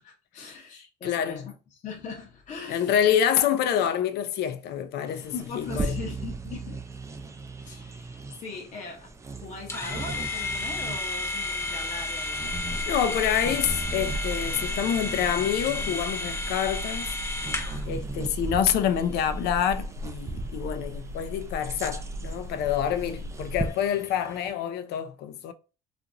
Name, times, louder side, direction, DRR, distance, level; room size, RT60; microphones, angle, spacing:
voice 1, 0.0-1.4 1.7-3.1 5.3-6.8 7.6-12.5, left 4 dB, 45° left, 0.8 m, -40 dB
voice 2, 1.0-1.4 2.7-6.0 12.9-17.1 17.4-17.6 17.9-25.5, left 9 dB, 75° left, 0.5 m, -27 dB
Bird vocalization bird call bird song, 5.1-24.5, right 3 dB, 15° right, 0.4 m, -39 dB
sound 1, 9.7-17.9, left 2 dB, 15° left, 0.8 m, -32 dB
sound 2, 12.4-23.7, equal, 65° right, 0.7 m, -37 dB
2.8 x 2.5 x 2.5 m
cardioid pair, 110°, 17 cm